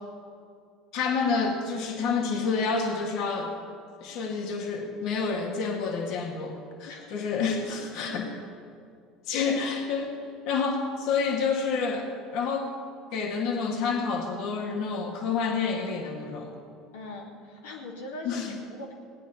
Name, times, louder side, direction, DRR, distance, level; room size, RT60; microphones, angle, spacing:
voice 1, 0.9-3.5 4.0-8.3 9.3-10.1 10.5-12.7 13.1-16.5 18.2-18.5, left 5 dB, 60° left, 2 dB, 2.0 m, -29 dB
voice 2, 16.9-18.9, left 2 dB, 80° left, -2 dB, 2.3 m, -40 dB
18.0 x 9.3 x 5.7 m, 2.3 s
hypercardioid pair, 75°, 0 cm